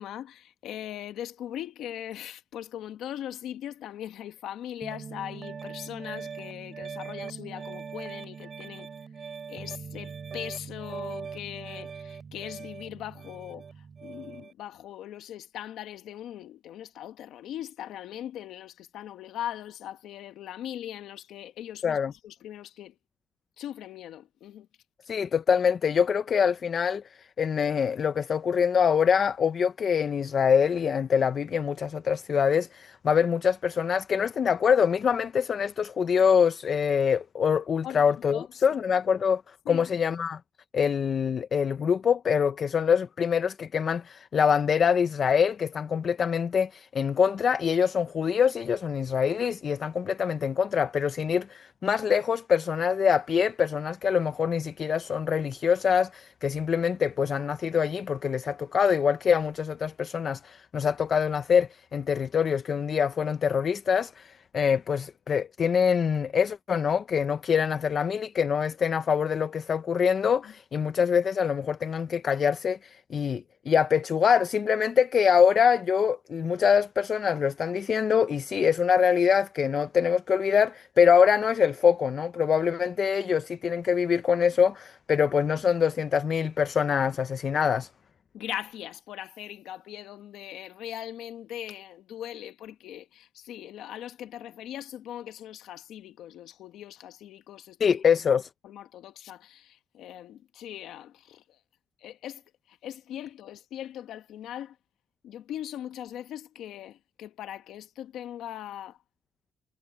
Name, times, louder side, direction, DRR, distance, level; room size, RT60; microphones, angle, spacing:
voice 1, 0.0-8.9 9.5-13.7 14.0-22.9 23.6-24.7 37.8-38.6 39.6-39.9 70.4-70.5 88.3-97.9 98.6-101.4 102.0-102.4 102.7-104.8 105.2-109.0, left 11 dB, 80° left, 1.4 m, -40 dB
Piano, 4.8-14.5, right 6 dB, 45° right, 6.3 m, -41 dB
voice 2, 25.1-39.4 39.7-40.4 40.7-87.9 97.8-98.5, left 7 dB, 50° left, 0.7 m, -24 dB
cardioid pair, 90°, 0 cm